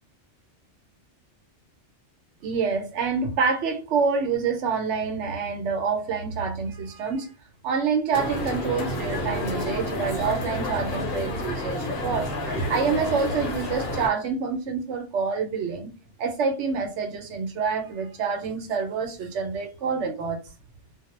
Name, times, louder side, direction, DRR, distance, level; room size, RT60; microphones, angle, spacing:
voice 1, 2.4-7.3 7.6-15.9 16.2-20.4, right 5 dB, 80° right, 1.0 m, -27 dB
sound 1, 8.1-14.1, left 1 dB, 60° left, 0.9 m, -30 dB
2.2 x 2.1 x 3.0 m
omnidirectional pair, 1.2 m